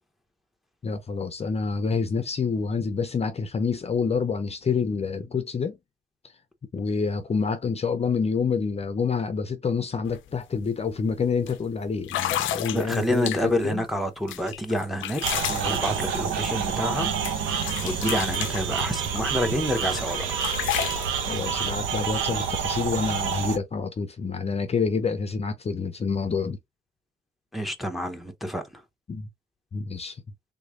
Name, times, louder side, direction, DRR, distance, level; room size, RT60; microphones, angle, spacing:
voice 1, 0.8-5.8 6.7-13.8 21.3-26.6 29.1-29.3 29.7-30.2, left 5 dB, 30° left, 0.6 m, -27 dB
sound 1, 10.0-10.2 10.5-10.8 11.5-11.6 12.0-13.7 14.3-17.0 17.2-19.3 19.7-21.1, left 12 dB, 75° left, 0.5 m, -32 dB
voice 2, 12.7-17.1 17.8-20.3 27.5-28.6, equal, ahead, 0.8 m, -28 dB
sound 2, 15.2-23.6, right 7 dB, 80° right, 1.0 m, -28 dB
3.6 x 3.0 x 2.5 m
cardioid pair, 90°, 20 cm